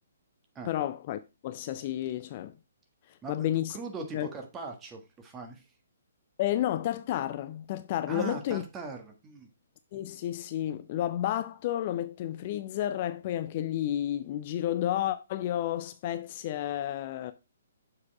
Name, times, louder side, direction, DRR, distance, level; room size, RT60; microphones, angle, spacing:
voice 1, 0.7-2.5 3.1-3.8 4.1-4.3 6.4-8.6 9.9-17.3, left 12 dB, 35° left, 0.4 m, -31 dB
voice 2, 3.2-5.6 8.1-9.5, right 4 dB, 15° right, 1.5 m, -40 dB
6.9 x 4.8 x 4.6 m
figure-of-eight pair, 130°, 0 cm